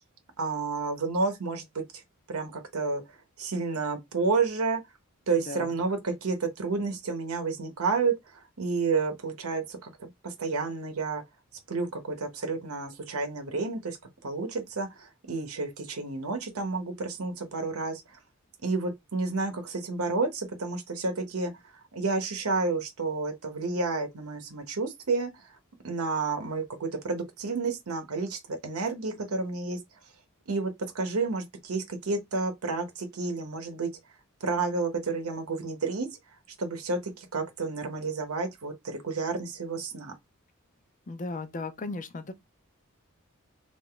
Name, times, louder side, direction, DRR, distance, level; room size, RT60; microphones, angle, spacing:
voice 1, 0.4-2.0 2.3-3.0 3.4-4.8 5.3-11.2 11.7-14.0 14.2-18.0 18.6-21.5 21.9-25.5 25.8-29.8 30.5-33.9 34.4-36.1 36.6-40.1, right 4 dB, 85° right, 0.8 m, -30 dB
voice 2, 41.1-42.3, left 3 dB, 35° left, 0.5 m, -36 dB
3.3 x 2.5 x 3.7 m
head